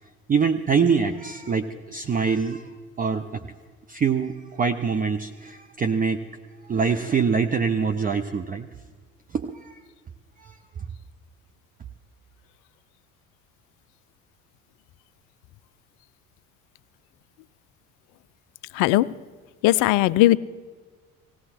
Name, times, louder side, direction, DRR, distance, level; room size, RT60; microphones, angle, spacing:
voice 1, 0.3-2.7 3.0-3.4 3.9-6.2 6.6-8.7 9.3-9.8 10.4-10.6, right 5 dB, 20° right, 7 dB, 0.7 m, -24 dB
voice 2, 18.8-19.1 19.6-20.4, left 17 dB, 45° left, 18 dB, 0.6 m, -18 dB
19.0 x 17.5 x 4.4 m, 1.5 s
figure-of-eight pair, 60°, 43 cm